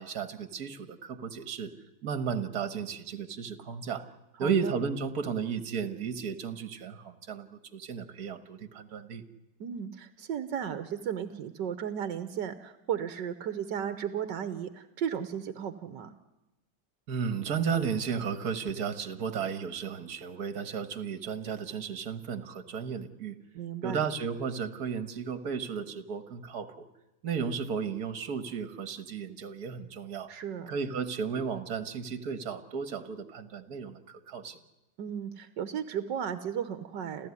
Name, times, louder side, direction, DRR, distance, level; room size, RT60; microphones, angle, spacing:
voice 1, 0.0-1.7 2.0-4.0 4.4-9.2 17.1-23.4 23.8-26.9 27.2-30.3 30.7-34.6, right 6 dB, 60° right, 12 dB, 2.0 m, -34 dB
voice 2, 4.4-4.8 9.6-16.1 23.5-24.0 30.3-30.7 35.0-37.3, right 8 dB, 80° right, 12 dB, 1.7 m, -35 dB
30.0 x 13.5 x 9.7 m, 0.98 s
omnidirectional pair, 1.9 m